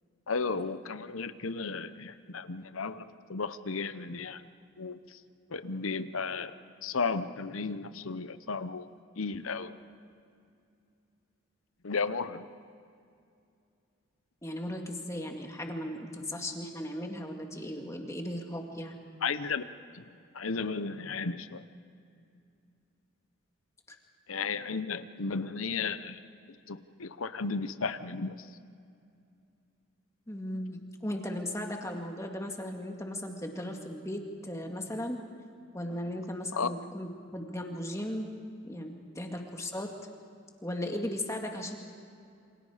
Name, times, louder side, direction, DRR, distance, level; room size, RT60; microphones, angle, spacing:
voice 1, 0.3-4.5 4.8-5.2 5.5-6.5 6.8-8.9 9.2-9.7 11.8-12.5 19.2-19.6 19.9-20.1 20.3-21.6 24.3-26.2 26.7-28.5 36.5-36.7, left 4 dB, 85° left, 12 dB, 0.8 m, -34 dB
voice 2, 14.4-19.0 23.9-24.0 30.3-35.2 35.7-38.3 38.6-39.9 40.6-41.8, left 1 dB, 15° left, 2 dB, 2.0 m, -37 dB
28.5 x 26.0 x 5.0 m, 2.5 s
head